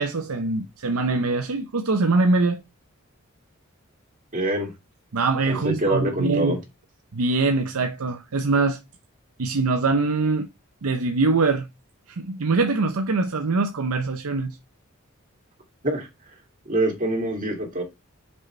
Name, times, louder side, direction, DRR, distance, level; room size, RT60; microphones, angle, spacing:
voice 1, 0.0-2.6 5.1-6.6 7.1-8.8 9.4-10.5 10.8-11.7 12.1-14.6, right 3 dB, 85° right, 0.7 m, -23 dB
voice 2, 4.3-4.7 5.5-6.6 15.8-16.1 16.7-17.8, right 1 dB, 40° right, 2.6 m, -25 dB
6.5 x 5.2 x 3.2 m
head